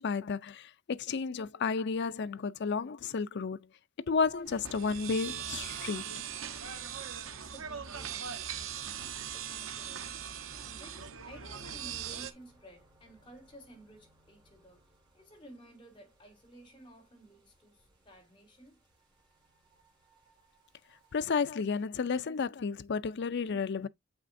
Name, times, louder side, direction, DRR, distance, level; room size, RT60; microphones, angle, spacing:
voice 1, 0.0-3.6 4.1-6.1 21.1-23.9, left 5 dB, 60° left, 0.5 m, -32 dB
sound 1, 4.1-21.9, right 1 dB, 25° right, 4.9 m, -64 dB
sound 2, 4.5-12.3, right 8 dB, 75° right, 1.0 m, -40 dB
voice 2, 7.2-10.2 10.5-18.8, right 1 dB, 25° left, 4.1 m, -55 dB
7.6 x 5.9 x 2.6 m
head